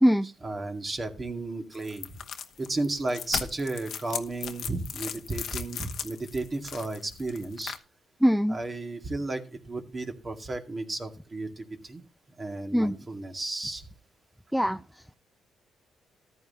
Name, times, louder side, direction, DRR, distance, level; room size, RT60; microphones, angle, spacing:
voice 1, 0.4-2.2 2.6-7.8 8.5-12.0 12.4-13.9, right 2 dB, 30° right, 4 dB, 2.1 m, -33 dB
sound 1, 1.7-7.8, left 8 dB, 65° left, 1.0 m, -37 dB
voice 2, 8.2-8.6 12.7-12.9 14.5-14.8, equal, ahead, 10 dB, 0.5 m, -21 dB
14.0 x 10.5 x 2.8 m, 0.32 s
cardioid pair, 90°, 0 cm